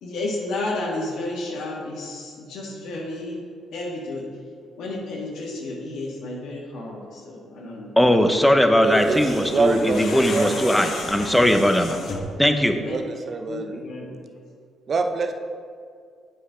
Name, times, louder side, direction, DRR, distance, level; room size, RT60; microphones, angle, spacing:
voice 1, 0.0-3.4 3.7-4.2 4.8-7.9 8.9-9.0 12.8-13.0 13.5-14.2, left 2 dB, 80° left, -3 dB, 1.6 m, -31 dB
voice 2, 8.0-12.0 12.4-12.8, equal, 5° left, 6 dB, 0.7 m, -19 dB
sound 1, 8.8-12.4, left 3 dB, 65° left, 1.3 m, -34 dB
voice 3, 8.8-9.2 9.5-11.0 12.9-13.7 14.9-15.3, right 4 dB, 50° right, 6 dB, 0.7 m, -25 dB
8.0 x 5.5 x 5.0 m, 2.2 s
cardioid pair, 90°, 0 cm